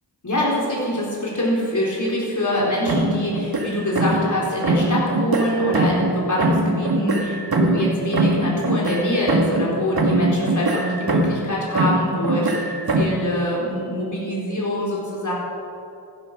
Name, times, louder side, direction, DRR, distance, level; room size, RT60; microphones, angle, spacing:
voice 1, 0.2-15.3, equal, 45° left, -5 dB, 4.1 m, -24 dB
sound 1, 2.9-4.4 4.6-6.1 6.4-9.7 10.0-11.5 11.7-13.2, right 2 dB, 60° right, 1.9 m, -22 dB
15.0 x 11.5 x 6.4 m, 2.6 s
wide cardioid pair, 70°, 42 cm